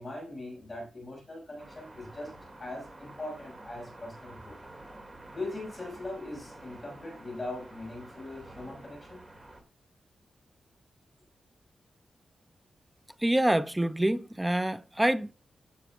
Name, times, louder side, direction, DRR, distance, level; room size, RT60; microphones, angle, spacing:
voice 1, 0.0-2.3 2.6-4.6 5.3-9.2, left 2 dB, 15° left, 5.9 m, -40 dB
sound 1, 1.6-9.6, right 1 dB, 25° right, 2.3 m, -49 dB
voice 2, 13.2-15.3, right 1 dB, 10° right, 0.4 m, -26 dB
15.5 x 7.1 x 2.4 m
wide cardioid pair, 150°, 0 cm